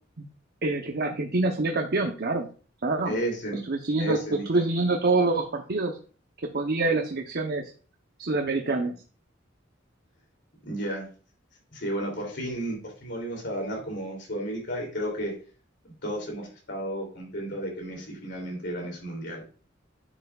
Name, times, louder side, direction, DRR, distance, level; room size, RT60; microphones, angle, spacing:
voice 1, 0.6-2.5 2.8-3.1 3.7-6.0 6.5-7.7 8.2-8.9, right 3 dB, 55° right, 3 dB, 0.8 m, -26 dB
voice 2, 3.0-3.6 4.0-4.6 10.7-11.1 11.7-15.3 16.0-19.5, right 1 dB, 65° left, 0 dB, 2.9 m, -33 dB
10.0 x 6.9 x 2.4 m, 0.37 s
head